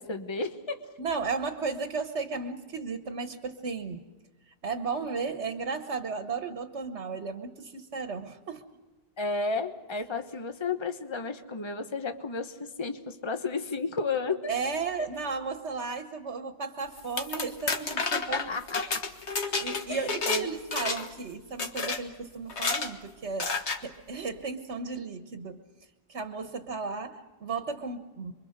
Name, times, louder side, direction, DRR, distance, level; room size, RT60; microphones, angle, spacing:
voice 1, 0.0-0.9 9.2-14.5 15.0-15.1 18.3-19.1 19.9-20.5, left 3 dB, 25° left, 7 dB, 1.2 m, -32 dB
voice 2, 1.0-4.0 4.6-8.6 14.5-18.5 19.5-23.5 23.8-25.6 26.1-28.3, right 4 dB, 85° right, 8 dB, 1.6 m, -34 dB
sound 1, 17.0-20.4 20.7-21.2 21.6-22.0 22.5-22.9 23.4-23.8, left 4 dB, 85° left, 1.8 m, -30 dB
27.5 x 23.5 x 6.7 m, 1.2 s
omnidirectional pair, 1.1 m